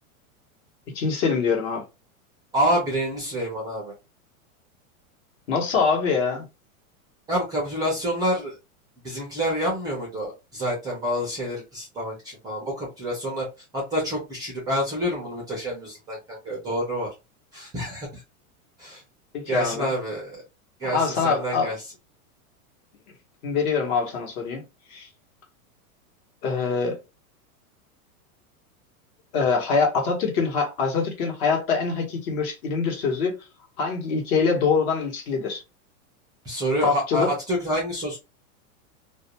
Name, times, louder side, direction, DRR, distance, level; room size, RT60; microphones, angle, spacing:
voice 1, 0.9-1.8 5.5-6.4 19.3-19.9 20.8-21.7 23.4-24.6 24.9-25.1 26.4-27.0 29.3-33.4 33.8-35.6 36.8-37.3, left 5 dB, 50° left, 1.1 m, -24 dB
voice 2, 2.5-3.9 7.3-8.5 9.0-13.5 13.7-17.1 17.5-18.2 18.8-19.0 19.5-20.4 20.8-21.8 36.4-38.2, equal, 10° right, 0.4 m, -27 dB
2.4 x 2.2 x 2.8 m
supercardioid pair, 150°, 44 cm